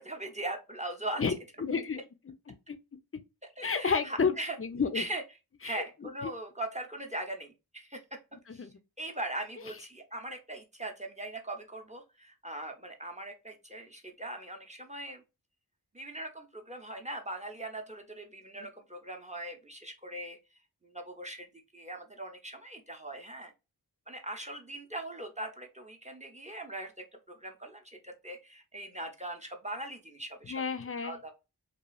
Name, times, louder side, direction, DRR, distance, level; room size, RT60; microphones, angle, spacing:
voice 1, 0.0-1.2 3.6-4.6 4.9-5.2 5.6-8.0 8.5-8.7 9.0-15.2 15.9-20.4 20.8-21.5 21.7-23.5 24.1-30.6 31.0-31.3, right 1 dB, 15° right, 0.6 m, -40 dB
voice 2, 1.6-2.0 2.3-2.8 3.6-5.0 5.6-6.3 8.5-8.7 30.5-31.2, left 5 dB, 35° left, 0.4 m, -31 dB
2.9 x 2.3 x 2.3 m
wide cardioid pair, 45°, 41 cm